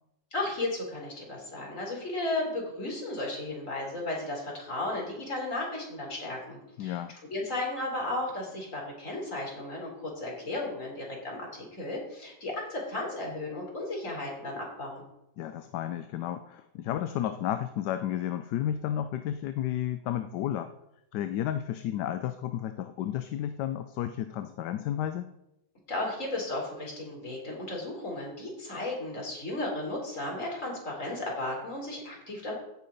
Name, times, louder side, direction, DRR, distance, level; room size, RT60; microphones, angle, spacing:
voice 1, 0.3-15.0 25.9-32.5, left 2 dB, 45° left, -1 dB, 3.9 m, -34 dB
voice 2, 6.8-7.2 15.4-20.7 21.1-25.3, left 11 dB, 75° left, 10 dB, 1.2 m, -32 dB
16.0 x 5.6 x 5.1 m, 0.87 s
omnidirectional pair, 1.9 m